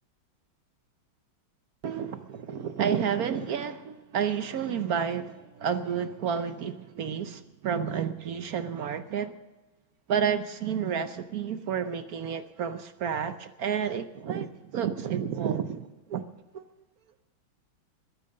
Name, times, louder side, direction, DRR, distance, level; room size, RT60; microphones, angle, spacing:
voice 1, 1.8-9.3 10.1-16.2 16.5-16.6, right 7 dB, 65° right, 0.9 m, -30 dB
21.5 x 9.5 x 6.5 m
omnidirectional pair, 2.3 m